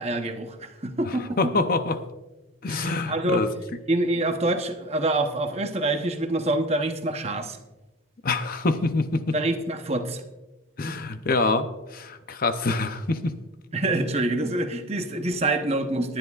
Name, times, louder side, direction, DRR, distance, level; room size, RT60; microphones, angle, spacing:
voice 1, 0.0-1.4 2.7-3.5 3.9-7.6 9.3-10.2 13.7-16.2, right 2 dB, 30° right, 0.8 m, -26 dB
voice 2, 1.1-2.0 2.6-3.5 8.2-9.4 10.8-13.4, left 3 dB, 45° left, 0.6 m, -26 dB
20.5 x 10.5 x 2.4 m
head